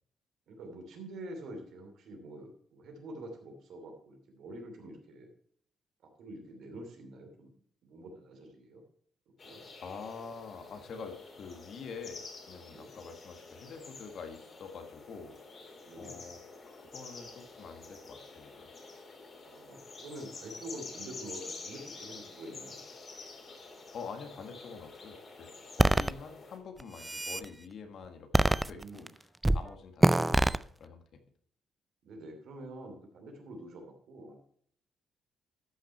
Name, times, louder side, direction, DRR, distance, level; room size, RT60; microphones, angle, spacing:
voice 1, 0.5-5.3 6.0-7.5 7.8-8.8 9.4-9.6 12.7-12.9 15.8-16.2 19.4-22.8 28.7-29.1 32.0-34.4, right 1 dB, 75° right, 4 dB, 2.7 m, -46 dB
sound 1, 9.4-26.6, left 3 dB, 45° left, 3.2 m, -49 dB
voice 2, 9.8-15.4 15.9-16.4 16.7-18.7 23.9-29.1 29.5-31.2, left 5 dB, 65° left, 6 dB, 1.6 m, -46 dB
sound 2, 25.8-26.1 26.8-27.4 28.3-29.1 29.4-29.6 30.0-30.6, right 2 dB, 15° right, 0.4 m, -24 dB
12.5 x 5.9 x 4.4 m, 0.62 s
cardioid pair, 90°, 0 cm